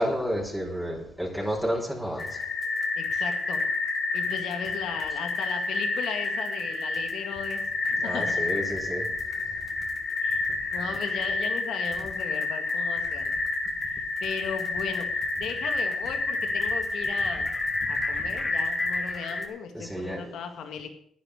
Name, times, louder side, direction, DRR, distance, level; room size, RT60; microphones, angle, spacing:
voice 1, 0.0-2.4 8.0-9.1 17.8-18.3 19.7-20.3, equal, 5° right, -2 dB, 4.5 m, -31 dB
sound 1, 2.2-19.5, left 3 dB, 40° left, 2.5 m, -29 dB
voice 2, 3.0-3.7 4.1-8.4 10.2-10.4 10.7-13.3 14.2-15.1 15.4-17.5 17.9-20.9, left 6 dB, 80° left, 5 dB, 2.0 m, -36 dB
10.5 x 9.9 x 6.6 m, 0.66 s
cardioid pair, 70°, 0 cm